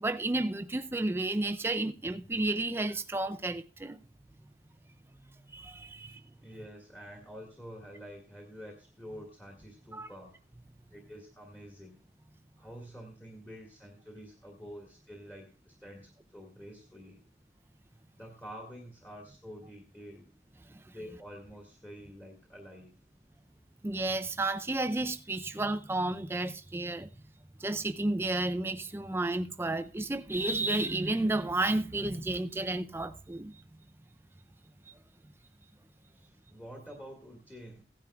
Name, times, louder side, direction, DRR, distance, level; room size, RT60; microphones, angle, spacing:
voice 1, 0.0-4.0 5.5-6.2 9.9-10.1 20.7-20.8 23.8-27.1 27.6-33.5, right 2 dB, 15° right, 0.4 m, -32 dB
voice 2, 5.9-10.4 10.9-12.0 12.6-17.2 18.2-20.3 20.9-22.9 36.2-37.8, equal, 10° left, 1.8 m, -48 dB
16.5 x 10.5 x 2.3 m
head